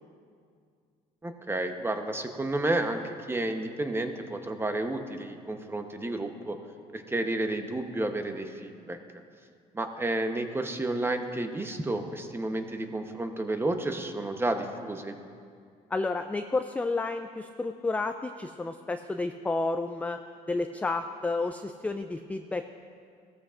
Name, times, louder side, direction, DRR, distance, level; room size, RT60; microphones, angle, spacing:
voice 1, 1.2-6.6 6.9-9.0 9.7-15.2, right 2 dB, 15° right, 6 dB, 0.9 m, -31 dB
voice 2, 15.9-20.2 20.5-22.7, left 3 dB, 10° left, 7 dB, 0.3 m, -31 dB
16.5 x 14.0 x 2.5 m, 2.2 s
cardioid pair, 110°, 17 cm